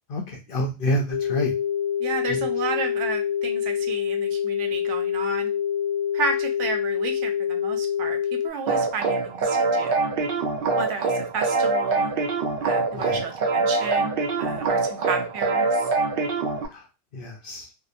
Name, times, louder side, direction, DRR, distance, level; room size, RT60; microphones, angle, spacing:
voice 1, 0.1-1.5 2.3-2.4 12.9-13.2 16.7-16.8 17.1-17.7, equal, 60° left, 1 dB, 0.6 m, -28 dB
sound 1, 1.1-8.5, left 9 dB, 85° left, 1.1 m, -26 dB
voice 2, 2.0-5.5 6.1-10.1 10.8-12.1 12.6-14.1 14.4-15.9, right 4 dB, 80° right, 6 dB, 0.9 m, -32 dB
sound 2, 8.7-16.7, right 3 dB, 60° right, 0.6 m, -24 dB
2.8 x 2.0 x 2.4 m, 0.26 s
omnidirectional pair, 1.2 m